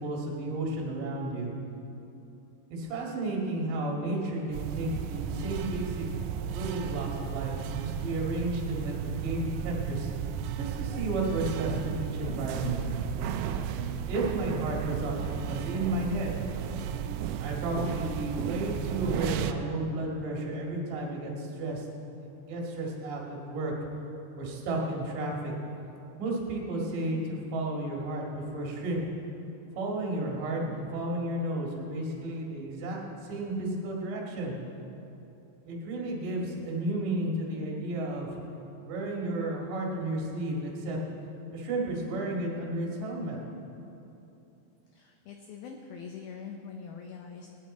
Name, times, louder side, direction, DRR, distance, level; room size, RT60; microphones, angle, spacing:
voice 1, 0.0-1.5 2.7-6.1 6.5-10.1 10.6-12.8 14.1-16.4 17.4-21.9 22.2-23.7 24.4-25.5 26.2-29.0 29.7-34.5 35.6-38.4 38.8-41.0 41.5-43.4, right 2 dB, 55° right, -2 dB, 3.2 m, -32 dB
sound 1, 4.5-19.5, right 8 dB, 85° right, 2.9 m, -34 dB
voice 2, 44.9-47.5, left 6 dB, 85° left, 2 dB, 2.1 m, -43 dB
19.0 x 11.0 x 4.3 m, 2.9 s
omnidirectional pair, 5.2 m